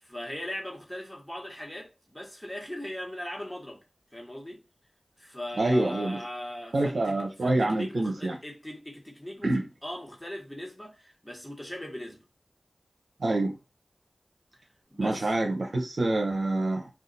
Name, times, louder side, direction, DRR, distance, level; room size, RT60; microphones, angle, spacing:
voice 1, 0.0-3.8 4.1-4.6 5.2-12.2 14.9-15.3, left 1 dB, 10° left, 1.4 m, -39 dB
voice 2, 5.6-6.2 6.7-8.4 9.4-9.6 13.2-13.5 15.0-16.9, right 2 dB, 80° right, 0.7 m, -26 dB
2.5 x 2.4 x 3.9 m
cardioid pair, 45°, 0 cm